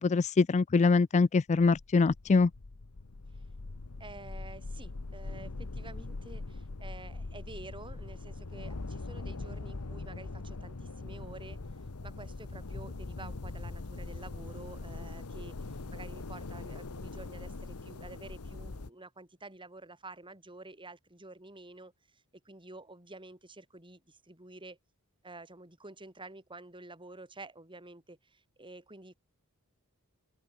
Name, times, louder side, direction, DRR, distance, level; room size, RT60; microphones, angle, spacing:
voice 1, 0.0-2.5, left 4 dB, 30° left, 0.4 m, -24 dB
sound 1, 1.5-18.9, left 3 dB, 80° left, 1.1 m, -42 dB
voice 2, 4.0-11.6 12.0-24.8 25.2-29.1, right 2 dB, 20° right, 7.1 m, -50 dB
open air
head